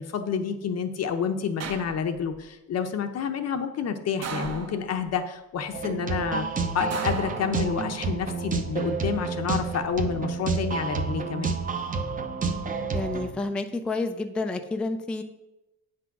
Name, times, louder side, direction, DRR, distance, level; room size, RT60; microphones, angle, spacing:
voice 1, 0.0-6.4 6.7-11.5, left 6 dB, 40° left, 7 dB, 0.8 m, -29 dB
sound 1, 1.6-2.4 4.2-5.2 6.9-8.0 9.4-10.0, right 5 dB, 40° right, 1.1 m, -37 dB
sound 2, 5.7-13.3, right 4 dB, 20° right, 0.8 m, -29 dB
voice 2, 12.9-15.2, left 2 dB, 5° left, 6 dB, 0.4 m, -29 dB
9.1 x 6.1 x 5.9 m, 0.95 s
cardioid pair, 155°, 39 cm